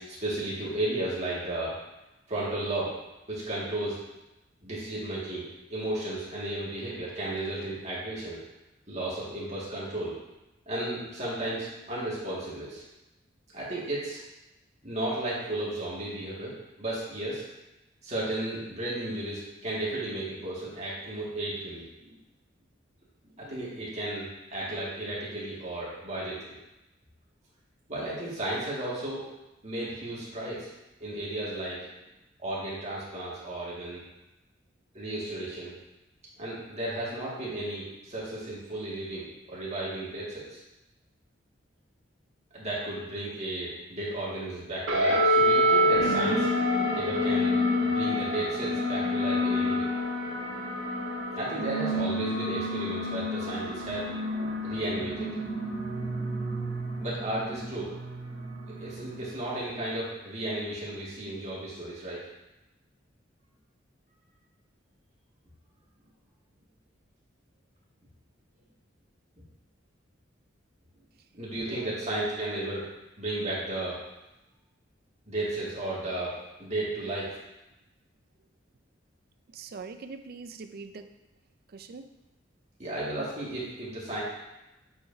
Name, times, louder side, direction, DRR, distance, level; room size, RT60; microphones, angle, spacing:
voice 1, 0.0-1.8 2.3-2.9 3.3-4.0 4.6-8.4 8.9-10.1 10.7-12.8 13.5-14.2 14.8-17.4 18.0-22.1 23.4-26.6 27.9-29.2 29.6-30.7 31.0-31.9 32.4-34.0 34.9-35.7 36.4-40.6 42.5-46.5 46.9-49.9 51.3-54.1 54.6-55.3 57.0-57.9 58.8-62.2 71.3-72.9 73.2-74.0 75.3-76.3 76.6-77.3 82.8-84.2, right 1 dB, 35° right, -7 dB, 1.9 m, -34 dB
sound 1, 44.9-59.6, equal, 85° right, 1.5 m, -28 dB
voice 2, 71.6-72.0 79.5-81.1 81.7-82.1, right 4 dB, 50° right, 8 dB, 0.4 m, -43 dB
8.0 x 4.8 x 2.7 m, 0.97 s
head